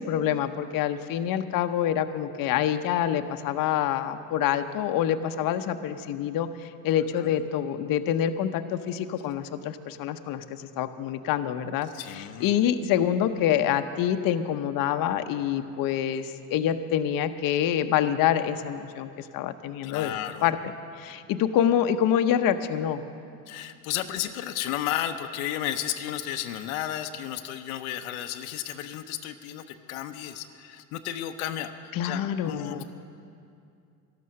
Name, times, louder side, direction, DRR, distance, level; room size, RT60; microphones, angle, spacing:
voice 1, 0.0-11.9 12.2-20.1 20.4-20.6 21.0-23.0 31.9-32.8, left 10 dB, 55° left, 9 dB, 0.8 m, -26 dB
voice 2, 11.9-12.5 19.8-20.5 23.5-32.8, left 12 dB, 85° left, 7 dB, 0.8 m, -33 dB
12.5 x 12.0 x 6.5 m, 2.5 s
supercardioid pair, 90°, 41 cm